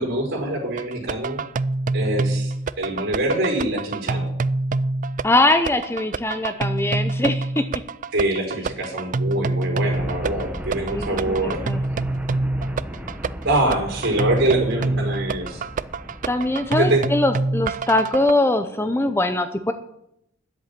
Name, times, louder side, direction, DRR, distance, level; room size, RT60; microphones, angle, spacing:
voice 1, 0.0-1.4 1.9-4.3 8.1-11.6 13.4-15.6 16.8-17.0, right 1 dB, 55° right, 1 dB, 5.1 m, -24 dB
sound 1, 0.8-18.3, right 3 dB, 40° right, 0.4 m, -26 dB
voice 2, 5.2-7.6 10.9-11.8 16.3-19.7, left 2 dB, 10° left, 9 dB, 0.6 m, -22 dB
sound 2, 9.9-17.4, equal, 5° right, 1.0 m, -35 dB
10.5 x 8.1 x 8.9 m, 0.78 s
head